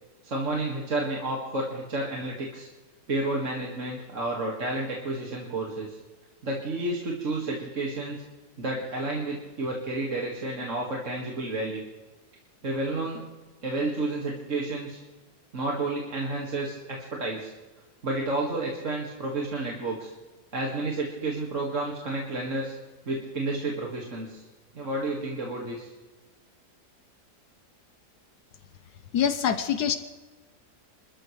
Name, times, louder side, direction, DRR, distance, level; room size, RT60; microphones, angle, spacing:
voice 1, 0.2-2.7 3.1-6.0 6.4-8.2 8.6-11.8 12.6-13.2 13.6-15.0 15.5-17.5 18.0-20.1 20.5-22.8 23.1-24.4 24.8-25.9, right 2 dB, 50° right, -2 dB, 2.3 m, -31 dB
voice 2, 29.1-30.0, left 8 dB, 80° left, 10 dB, 1.4 m, -24 dB
26.5 x 13.5 x 3.2 m, 1.2 s
omnidirectional pair, 1.7 m